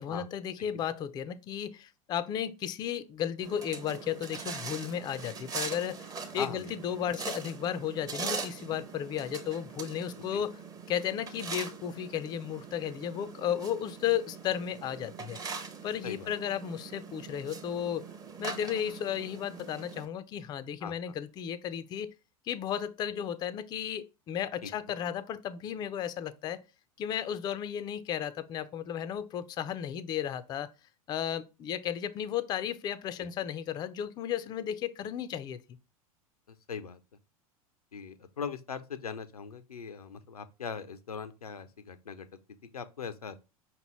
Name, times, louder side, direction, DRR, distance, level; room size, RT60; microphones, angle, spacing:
voice 1, 0.0-6.1 6.3-10.6 10.9-15.4 15.8-18.0 18.4-22.1 22.5-26.6 27.0-30.7 31.1-35.6, left 9 dB, 20° left, 0.3 m, -34 dB
sound 1, 3.4-20.1, right 5 dB, 20° right, 0.6 m, -42 dB
voice 2, 36.7-37.0 37.9-42.3 42.7-43.4, left 6 dB, 80° left, 0.5 m, -40 dB
5.3 x 2.9 x 3.0 m
figure-of-eight pair, 85°, 19 cm